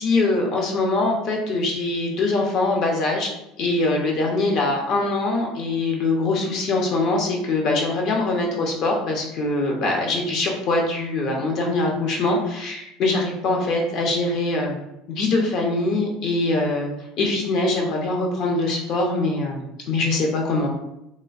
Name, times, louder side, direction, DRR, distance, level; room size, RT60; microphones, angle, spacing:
voice 1, 0.0-3.3 3.6-14.8 15.1-16.9 17.2-20.7, left 2 dB, 55° left, 0 dB, 0.7 m, -23 dB
2.6 x 2.1 x 2.4 m, 0.86 s
supercardioid pair, 90°, 0 cm